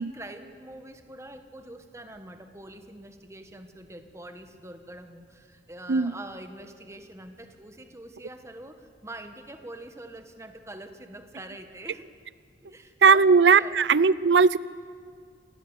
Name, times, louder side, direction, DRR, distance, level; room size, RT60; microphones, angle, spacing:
voice 1, 0.0-12.1 12.6-13.8, right 1 dB, 15° right, 7 dB, 1.5 m, -44 dB
voice 2, 13.0-14.6, right 5 dB, 75° right, 19 dB, 0.6 m, -18 dB
28.0 x 18.5 x 8.2 m, 2.1 s
head